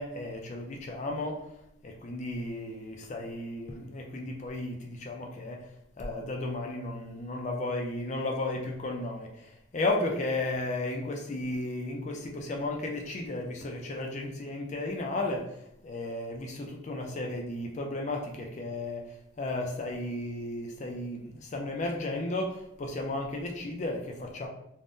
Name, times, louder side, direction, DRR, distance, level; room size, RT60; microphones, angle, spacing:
voice 1, 0.0-1.4 1.8-5.7 6.0-15.5 15.8-19.0 19.4-24.5, left 2 dB, 35° left, 1 dB, 0.3 m, -34 dB
2.5 x 2.1 x 3.5 m, 0.81 s
head